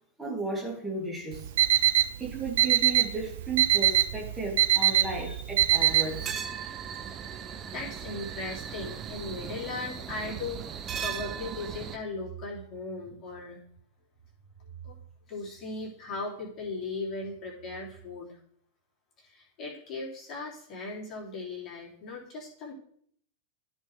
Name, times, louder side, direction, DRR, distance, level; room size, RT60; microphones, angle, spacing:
voice 1, 0.2-1.5 1.8-1.9 2.2-6.4, right 3 dB, 10° right, -2 dB, 2.1 m, -34 dB
Alarm, 1.3-6.3, right 13 dB, 55° right, 0.4 m, -24 dB
sound 1, 5.7-12.0, right 8 dB, 25° right, 0.7 m, -38 dB
voice 2, 7.7-13.6 14.6-14.9 15.3-18.4 19.2-22.7, left 3 dB, 30° left, -4 dB, 3.2 m, -38 dB
13.5 x 4.5 x 3.4 m, 0.63 s
figure-of-eight pair, 90°, 0 cm